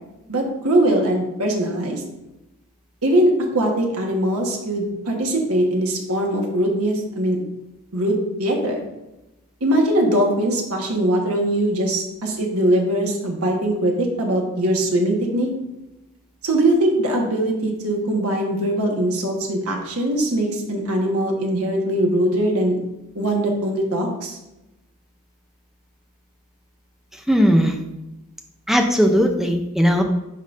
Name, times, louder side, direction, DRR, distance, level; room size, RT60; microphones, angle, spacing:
voice 1, 0.3-2.0 3.0-7.4 7.9-8.8 9.6-15.5 16.4-22.8 23.1-24.4, right 1 dB, 80° right, 1 dB, 1.3 m, -21 dB
voice 2, 27.3-27.8 28.7-30.0, equal, ahead, 3 dB, 0.5 m, -17 dB
10.5 x 3.9 x 2.5 m, 0.95 s
head